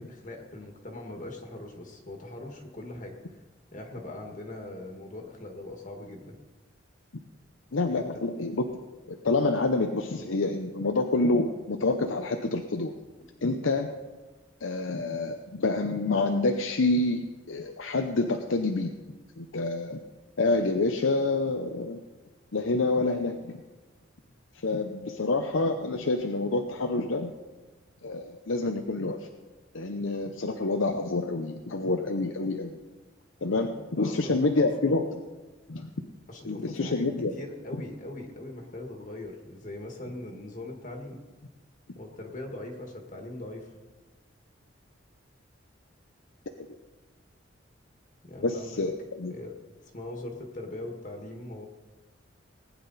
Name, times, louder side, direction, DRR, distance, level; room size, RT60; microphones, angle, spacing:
voice 1, 0.0-3.2 3.7-6.3 33.6-33.7 34.0-35.0 36.3-41.2 41.9-43.7 48.2-48.8 49.3-49.5 49.8-51.7, left 1 dB, 40° left, 2 dB, 1.7 m, -40 dB
voice 2, 7.7-8.6 9.1-12.9 13.4-13.9 14.6-18.9 19.4-20.0 20.4-22.0 22.5-23.6 24.6-27.3 28.0-29.3 29.7-32.8 33.4-35.1 35.7-35.9 36.4-37.3 48.4-49.3, left 3 dB, 90° left, 5 dB, 0.8 m, -27 dB
19.5 x 9.7 x 4.1 m, 1.2 s
head